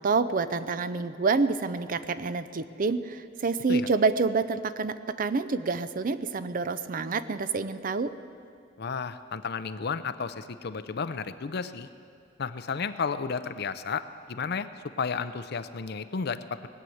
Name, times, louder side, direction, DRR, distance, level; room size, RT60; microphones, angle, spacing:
voice 1, 0.0-8.1, right 4 dB, 45° right, 13 dB, 0.5 m, -27 dB
voice 2, 8.8-11.9 12.4-14.0 14.3-14.7 15.0-16.7, left 5 dB, 60° left, 12 dB, 0.6 m, -32 dB
19.5 x 8.6 x 7.9 m, 2.3 s
head